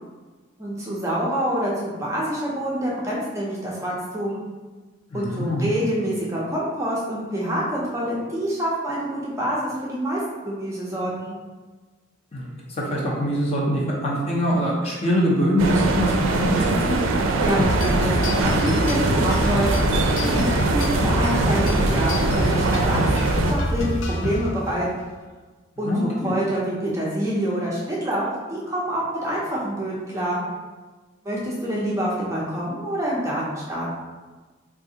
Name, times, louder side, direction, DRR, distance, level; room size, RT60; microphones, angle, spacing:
voice 1, 0.6-4.4 5.1-10.2 10.4-11.4 17.4-18.1 18.4-23.0 23.5-25.1 25.8-25.9 26.2-30.4 31.2-33.9, right 1 dB, 15° right, -5 dB, 0.5 m, -26 dB
voice 2, 5.1-5.7 12.3-17.0 25.9-26.3, equal, 30° left, -4 dB, 0.6 m, -23 dB
sound 1, 15.6-23.5, right 3 dB, 85° right, 0.4 m, -22 dB
sound 2, 17.6-24.7, left 1 dB, 80° left, 0.5 m, -25 dB
3.5 x 2.4 x 2.7 m, 1.3 s
head